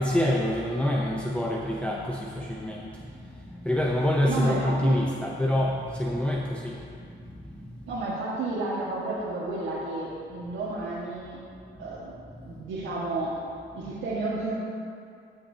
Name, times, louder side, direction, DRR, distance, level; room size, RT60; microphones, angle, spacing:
voice 1, 0.0-2.9 3.6-6.8, left 1 dB, 5° left, -2 dB, 0.7 m, -26 dB
voice 2, 4.3-5.0 7.9-11.4 11.8-12.1 12.4-13.3 13.7-14.5, right 2 dB, 75° right, -9 dB, 1.6 m, -31 dB
14.0 x 5.8 x 2.8 m, 2.4 s
cardioid pair, 90°, 20 cm